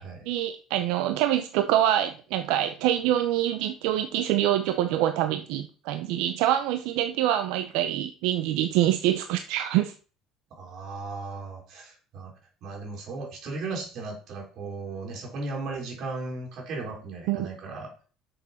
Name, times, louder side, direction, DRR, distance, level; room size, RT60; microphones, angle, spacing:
voice 1, 0.3-9.9 17.3-17.5, right 12 dB, 85° right, 9 dB, 0.7 m, -25 dB
voice 2, 10.6-12.3 12.6-17.9, right 3 dB, 50° right, 0 dB, 3.9 m, -36 dB
7.6 x 6.5 x 5.7 m, 0.39 s
cardioid pair, 155°, 0 cm